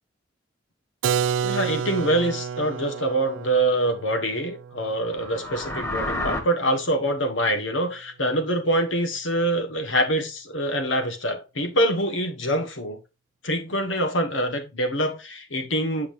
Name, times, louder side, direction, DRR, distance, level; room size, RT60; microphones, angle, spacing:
Keyboard (musical), 1.0-6.6, right 7 dB, 85° right, 0.3 m, -30 dB
voice 1, 1.4-13.0 13.4-16.1, right 1 dB, 85° left, 1.6 m, -25 dB
sound 1, 5.0-6.4, left 1 dB, 15° left, 1.4 m, -30 dB
8.7 x 5.7 x 2.7 m
head